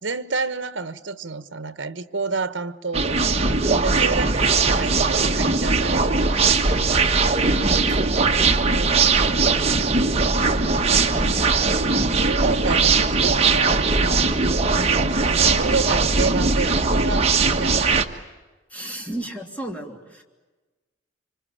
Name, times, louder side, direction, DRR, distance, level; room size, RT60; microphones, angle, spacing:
voice 1, 0.0-7.1 8.6-10.4 10.8-11.1 12.2-14.3 14.7-18.0, right 4 dB, 65° right, 13 dB, 1.1 m, -30 dB
sound 1, 2.9-18.0, right 4 dB, 35° right, 1.4 m, -20 dB
voice 2, 7.5-8.0 18.7-20.2, right 1 dB, 10° left, 1 dB, 3.1 m, -33 dB
26.0 x 25.5 x 8.7 m, 1.2 s
head